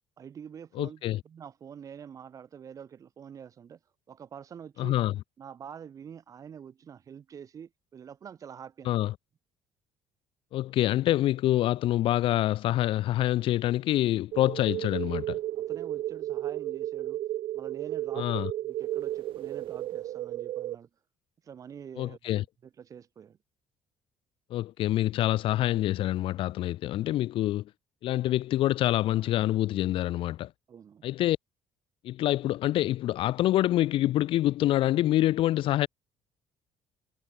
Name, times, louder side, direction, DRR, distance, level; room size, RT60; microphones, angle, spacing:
voice 1, 0.2-3.8 4.1-5.0 5.4-9.0 15.5-17.2 17.5-20.9 21.4-23.4 30.7-31.0, right 8 dB, 30° right, 6.9 m, -46 dB
voice 2, 0.8-1.2 4.8-5.1 8.8-9.1 10.5-15.4 18.2-18.5 22.0-22.4 24.5-27.6 28.0-30.5 31.0-31.4 32.0-35.9, left 14 dB, 55° left, 1.0 m, -26 dB
sound 1, 14.3-20.8, right 13 dB, 55° right, 2.5 m, -33 dB
cardioid pair, 175°, 11 cm